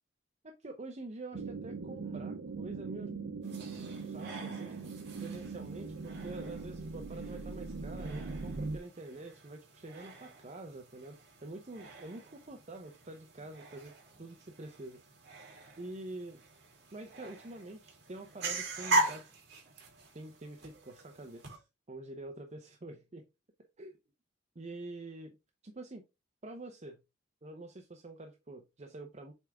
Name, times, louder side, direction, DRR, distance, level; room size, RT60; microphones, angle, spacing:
voice 1, 0.4-3.1 4.0-13.9 14.2-15.0 15.8-16.4 16.9-19.3 20.1-23.3 23.6-24.0 24.5-25.3 25.6-26.0 26.4-27.0 27.4-29.3, right 2 dB, 35° right, 0.7 m, -46 dB
sound 1, 1.3-8.8, right 4 dB, 90° right, 0.7 m, -40 dB
sound 2, 3.4-21.6, right 2 dB, 60° right, 2.9 m, -41 dB
8.0 x 3.6 x 3.5 m
head